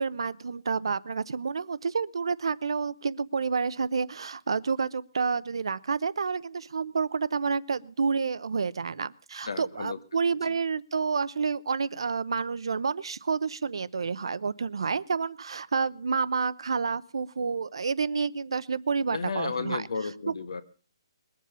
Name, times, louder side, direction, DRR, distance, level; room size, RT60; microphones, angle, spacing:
voice 1, 0.0-19.9, right 5 dB, 65° right, 17 dB, 0.7 m, -29 dB
voice 2, 9.4-10.0 10.4-10.5 19.1-20.6, left 4 dB, 65° left, 12 dB, 1.5 m, -33 dB
21.0 x 7.6 x 6.8 m, 0.40 s
hypercardioid pair, 180°, 3 cm